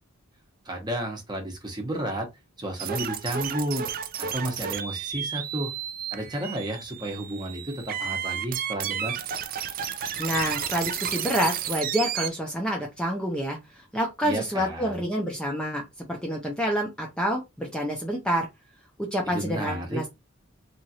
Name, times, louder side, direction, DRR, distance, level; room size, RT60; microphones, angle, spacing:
voice 1, 0.7-2.3 2.6-3.9 4.2-5.7 6.1-9.1 14.2-15.0 19.3-20.0, right 1 dB, 20° right, 0.9 m, -32 dB
sound 1, 2.8-12.3, right 9 dB, 45° right, 0.4 m, -32 dB
voice 2, 10.2-13.6 13.9-18.5 19.1-20.0, equal, 5° left, 0.6 m, -28 dB
3.0 x 2.5 x 2.8 m
head